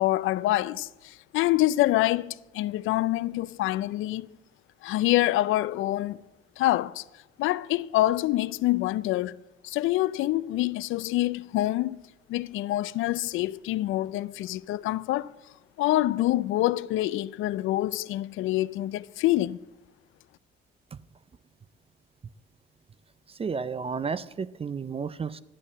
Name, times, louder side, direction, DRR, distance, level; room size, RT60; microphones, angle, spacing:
voice 1, 0.0-4.3 4.8-6.2 6.6-7.0 7.4-9.3 9.6-12.0 12.3-15.3 15.8-19.6, left 16 dB, 85° left, 0.4 m, -26 dB
voice 2, 23.4-25.4, right 5 dB, 30° right, 0.4 m, -32 dB
11.0 x 8.5 x 7.2 m
cardioid pair, 90°, 20 cm